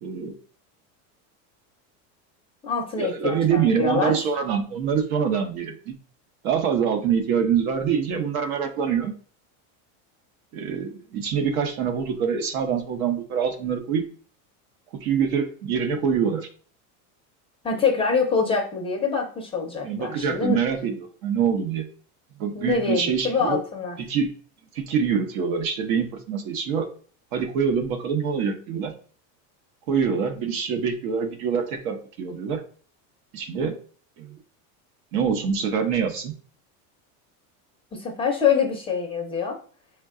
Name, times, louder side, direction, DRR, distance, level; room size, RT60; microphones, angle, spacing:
voice 1, 0.0-0.3 3.0-5.9 6.4-9.1 10.5-14.1 15.0-16.5 19.8-21.0 21.2-21.8 22.4-23.6 24.0-24.3 24.7-26.9 27.3-28.9 29.9-32.6 33.3-33.8 34.2-34.4 35.1-36.3, right 7 dB, 85° right, 6 dB, 0.9 m, -25 dB
voice 2, 2.6-4.3 17.6-20.6 22.5-24.0 37.9-39.6, left 5 dB, 15° left, 1 dB, 0.4 m, -25 dB
4.5 x 2.2 x 3.6 m, 0.43 s
supercardioid pair, 150°, 41 cm